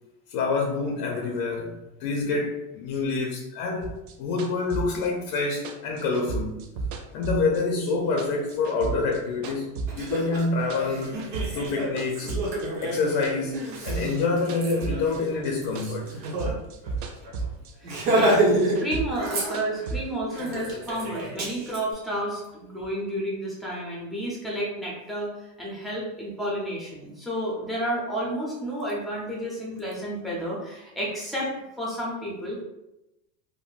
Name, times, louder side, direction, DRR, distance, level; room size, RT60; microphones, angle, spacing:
voice 1, 0.3-3.9 4.2-6.6 7.1-11.2 11.5-12.3 12.8-16.2, left 3 dB, 50° left, 1 dB, 0.6 m, -27 dB
sound 1, 3.8-7.9 8.2-10.1 10.4-11.7 12.0-15.5 15.8-17.7 18.0-20.0, right 4 dB, 50° right, 0.4 m, -34 dB
Laughter, 9.4-9.5 9.9-16.5 16.8-17.0 17.2-17.4 17.8-18.8 19.1-19.9 20.3-21.8, right 1 dB, 85° right, 1.1 m, -28 dB
voice 2, 17.8-18.4 18.8-31.5 31.8-32.6, right 1 dB, ahead, -5 dB, 0.5 m, -31 dB
3.6 x 2.1 x 2.4 m, 0.91 s
supercardioid pair, 130°, 49 cm